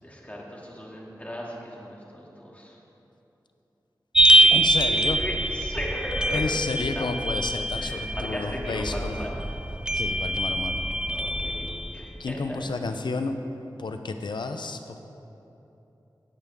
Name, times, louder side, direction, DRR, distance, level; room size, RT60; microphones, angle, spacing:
voice 1, 0.0-2.7 4.2-6.4 6.9-7.0 7.7-9.4 11.1-12.8, equal, 20° left, -3 dB, 2.4 m, -37 dB
sound 1, 4.1-12.2, right 1 dB, 10° right, 0.4 m, -24 dB
voice 2, 4.5-5.2 6.3-9.2 9.9-10.8 12.2-13.4 13.8-15.0, left 3 dB, 80° left, 7 dB, 0.6 m, -31 dB
16.5 x 8.3 x 3.6 m, 3.0 s
wide cardioid pair, 45°, 8 cm